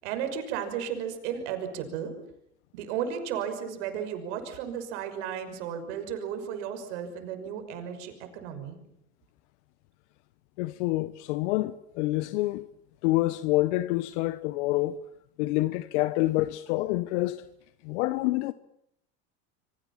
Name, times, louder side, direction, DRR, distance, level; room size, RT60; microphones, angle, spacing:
voice 1, 0.0-2.1 2.7-8.8, right 8 dB, 75° right, 5.9 m, -34 dB
voice 2, 10.6-12.6 13.0-15.0 15.4-17.4 17.8-18.5, left 18 dB, 75° left, 1.1 m, -27 dB
28.0 x 23.5 x 7.4 m
supercardioid pair, 95°, 35 cm